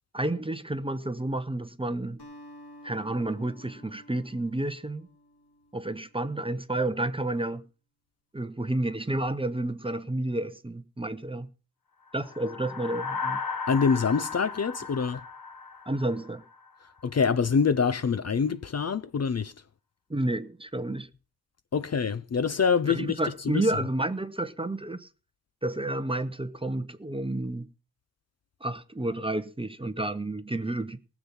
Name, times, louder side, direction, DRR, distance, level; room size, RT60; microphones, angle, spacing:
voice 1, 0.1-2.2 2.8-5.1 5.7-7.7 8.3-11.5 12.1-13.4 15.9-16.4 20.1-21.1 22.9-25.1 25.6-27.7 28.6-31.0, right 1 dB, 15° right, 0.7 m, -30 dB
Acoustic guitar, 2.2-6.7, equal, 85° left, 3.4 m, -52 dB
sound 1, 12.2-16.7, left 5 dB, 60° left, 1.1 m, -36 dB
voice 2, 13.7-15.2 17.0-19.5 21.7-23.2 23.5-23.6, left 6 dB, 40° left, 0.6 m, -25 dB
19.5 x 7.3 x 5.7 m
wide cardioid pair, 125°, 38 cm